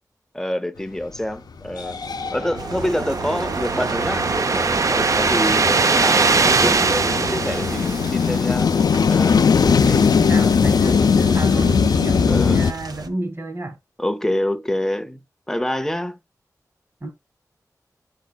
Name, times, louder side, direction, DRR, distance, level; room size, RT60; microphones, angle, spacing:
voice 1, 0.3-2.0 2.3-8.7 9.1-9.4 12.3-12.6 14.0-15.2 15.5-16.2, left 1 dB, 5° left, 0.6 m, -26 dB
sound 1, 1.1-1.2 1.7-12.7, left 6 dB, 85° left, 0.5 m, -20 dB
sound 2, 2.1-8.6, right 4 dB, 55° right, 0.5 m, -21 dB
sound 3, 2.6-13.1, right 4 dB, 85° right, 0.9 m, -37 dB
voice 2, 9.7-13.8 17.0-17.1, right 2 dB, 35° right, 1.3 m, -30 dB
8.8 x 5.2 x 2.3 m
wide cardioid pair, 100°, 7 cm